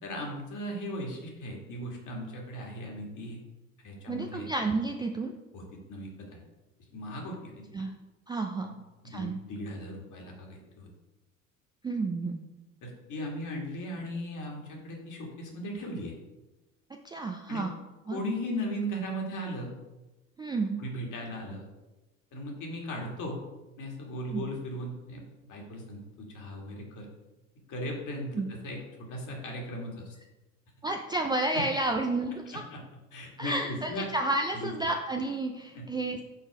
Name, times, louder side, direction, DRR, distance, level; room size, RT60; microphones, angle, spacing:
voice 1, 0.0-3.4 3.8-4.5 5.5-6.4 6.9-7.7 8.6-8.8 9.0-10.9 12.8-16.1 17.5-17.6 18.1-19.7 20.8-21.7 22.3-23.4 23.8-27.1 27.7-30.2 31.5-31.6 32.7-32.8 33.1-34.1 34.5-34.7 35.7-35.9, equal, 50° left, 0 dB, 1.9 m, -37 dB
voice 2, 4.1-5.3 7.7-7.9 8.3-8.7 9.1-9.4 11.8-12.4 17.0-17.7 18.1-18.2 20.4-20.8 24.3-24.5 28.4-28.5 30.8-32.6 33.4-36.2, right 2 dB, 10° right, 3 dB, 0.3 m, -31 dB
5.5 x 3.9 x 4.7 m, 1.1 s
hypercardioid pair, 65°, 41 cm